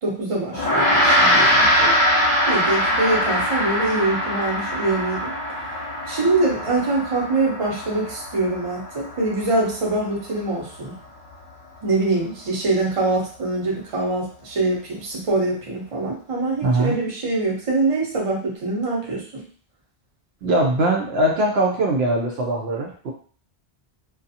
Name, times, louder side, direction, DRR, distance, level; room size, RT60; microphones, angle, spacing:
voice 1, 0.0-1.9 2.4-5.3 6.0-11.0 11.8-19.4, right 2 dB, 35° right, -3 dB, 0.7 m, -24 dB
Gong, 0.5-10.2, equal, 50° left, 0.9 m, -22 dB
voice 2, 16.6-17.0 20.4-23.1, right 1 dB, 75° right, 0 dB, 0.8 m, -21 dB
2.4 x 2.3 x 2.7 m, 0.43 s
omnidirectional pair, 1.1 m